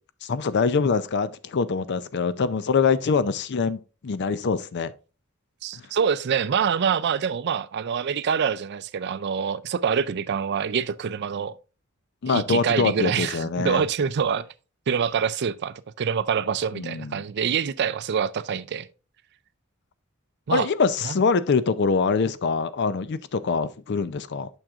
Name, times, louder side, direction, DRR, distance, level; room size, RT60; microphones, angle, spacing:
voice 1, 0.2-4.9 5.7-5.8 12.2-13.8 16.7-17.2 20.5-24.5, left 5 dB, 55° left, 0.5 m, -24 dB
voice 2, 5.6-11.5 12.3-14.5 14.9-18.9 20.5-20.7 21.0-21.2, right 7 dB, 55° right, 0.4 m, -25 dB
8.9 x 6.3 x 2.4 m
head